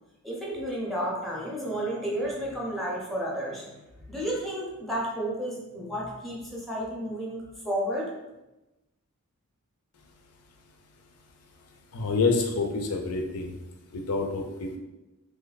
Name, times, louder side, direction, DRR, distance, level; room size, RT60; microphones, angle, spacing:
voice 1, 0.2-8.1, equal, ahead, -4 dB, 0.7 m, -32 dB
voice 2, 11.9-13.6 13.9-14.8, left 4 dB, 80° left, 3 dB, 0.6 m, -27 dB
3.0 x 2.2 x 4.0 m, 1.0 s
head